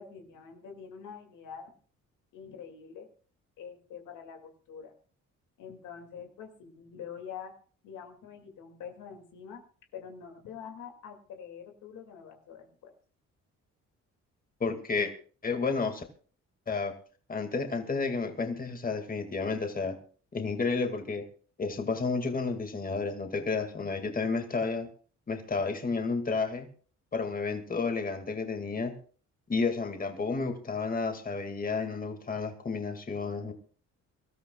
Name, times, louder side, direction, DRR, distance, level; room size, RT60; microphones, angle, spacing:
voice 1, 0.0-1.7 2.3-3.1 3.6-4.9 5.6-7.5 7.8-9.6 9.9-12.9, left 7 dB, 85° left, 4 dB, 2.5 m, -45 dB
voice 2, 14.6-15.1 15.4-16.0 16.7-16.9 17.3-20.0 20.3-21.3 21.6-24.9 25.3-26.7 27.1-29.0 29.5-33.5, left 4 dB, 30° left, 6 dB, 2.1 m, -31 dB
25.5 x 13.5 x 2.3 m, 0.40 s
cardioid pair, 90°, 30 cm